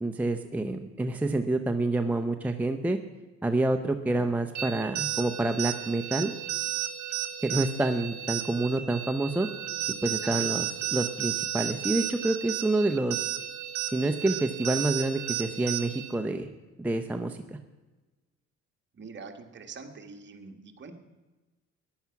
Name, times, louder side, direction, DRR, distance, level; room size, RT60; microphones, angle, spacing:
voice 1, 0.0-3.0 3.4-6.3 7.4-9.5 10.0-13.3 13.9-16.5 16.8-17.6, right 2 dB, 5° right, 5 dB, 0.6 m, -28 dB
sound 1, 4.6-16.2, right 11 dB, 75° right, 1.1 m, -33 dB
voice 2, 10.2-10.6 18.9-20.9, right 4 dB, 40° right, 4 dB, 1.7 m, -45 dB
14.0 x 10.5 x 5.8 m, 1.2 s
cardioid pair, 120°, 29 cm